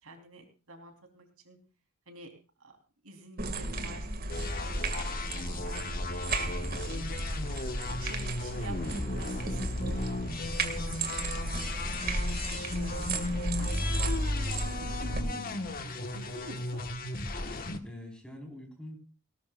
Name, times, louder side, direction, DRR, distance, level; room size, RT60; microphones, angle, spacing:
voice 1, 0.0-1.6 2.1-2.3 2.6-2.8 3.0-7.1 7.9-15.3 15.8-16.8, right 1 dB, 70° right, 4 dB, 3.8 m, -49 dB
sound 1, 3.4-15.2, right 2 dB, 40° right, 2.1 m, -34 dB
voice 2, 3.6-4.0 15.1-15.6 17.8-19.0, equal, 5° left, 2 dB, 4.5 m, -45 dB
sound 2, 4.3-17.8, left 2 dB, 40° left, 1.4 m, -36 dB
19.5 x 18.5 x 2.5 m, 0.34 s
head